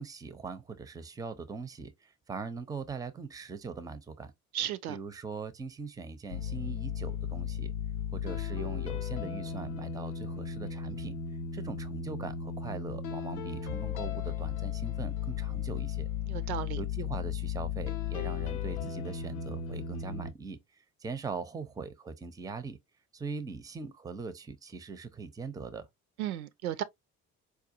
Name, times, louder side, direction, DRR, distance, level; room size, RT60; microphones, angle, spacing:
voice 1, 0.0-4.3 4.9-7.7 8.1-11.2 11.5-16.1 16.8-20.6 21.0-22.8 23.1-25.9, right 4 dB, 10° right, 0.5 m, -41 dB
voice 2, 4.5-5.0 16.3-16.8 26.2-26.8, right 11 dB, 75° right, 0.5 m, -34 dB
sound 1, 6.3-20.3, left 8 dB, 80° left, 0.6 m, -35 dB
4.7 x 2.2 x 2.6 m
figure-of-eight pair, 50°, 44 cm